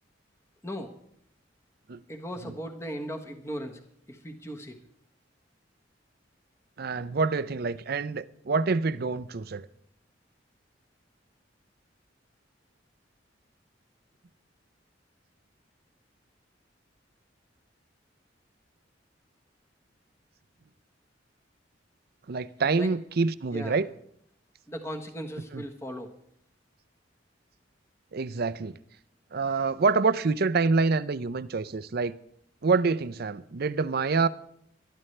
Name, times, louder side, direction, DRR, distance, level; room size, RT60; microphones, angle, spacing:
voice 1, 2.1-3.8 4.1-4.7 22.8-23.0 23.5-23.8 24.7-26.1, equal, 15° left, 1.3 m, -37 dB
voice 2, 6.8-9.7 22.3-23.9 25.5-25.6 28.1-28.8 29.3-32.1 32.6-34.3, right 4 dB, 55° right, 0.6 m, -26 dB
21.0 x 12.5 x 3.3 m
head